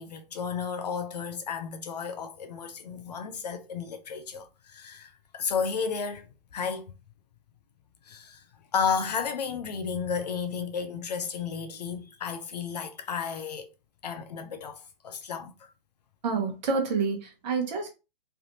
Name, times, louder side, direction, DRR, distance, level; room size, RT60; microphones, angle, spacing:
voice 1, 0.0-6.9 8.1-8.4 8.7-13.7 14.0-15.7, left 6 dB, 45° left, 0.4 m, -33 dB
voice 2, 16.2-17.9, right 4 dB, 45° right, 1.1 m, -28 dB
3.3 x 2.5 x 2.7 m
hypercardioid pair, 145°, 30 cm